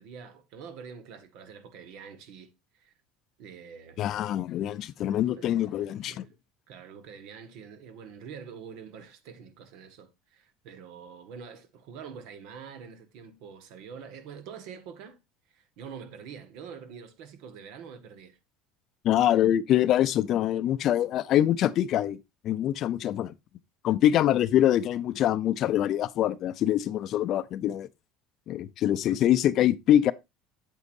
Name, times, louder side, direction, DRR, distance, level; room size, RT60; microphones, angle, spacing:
voice 1, 0.0-2.9 3.4-4.0 5.0-5.7 6.0-6.3 6.7-15.2 15.5-18.4, right 6 dB, 65° right, 1.7 m, -45 dB
voice 2, 4.0-6.2 19.0-22.2 22.4-23.3 23.8-27.9 28.5-30.1, left 12 dB, 45° left, 0.5 m, -24 dB
8.2 x 8.2 x 2.6 m
cardioid pair, 140°, 0 cm